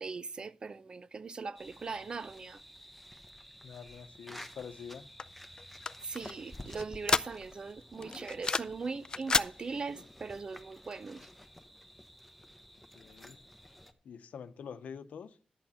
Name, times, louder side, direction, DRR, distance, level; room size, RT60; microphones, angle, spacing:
voice 1, 0.0-2.6 6.0-11.2, right 4 dB, 40° right, 0.5 m, -40 dB
sound 1, 1.5-13.9, equal, ahead, 1.0 m, -52 dB
voice 2, 3.6-5.1 12.9-13.4 14.0-15.4, left 7 dB, 85° left, 0.9 m, -46 dB
sound 2, 5.2-7.7 8.0-8.8 9.1-9.5, left 4 dB, 35° left, 0.4 m, -31 dB
11.5 x 8.5 x 4.3 m
wide cardioid pair, 140°, 2 cm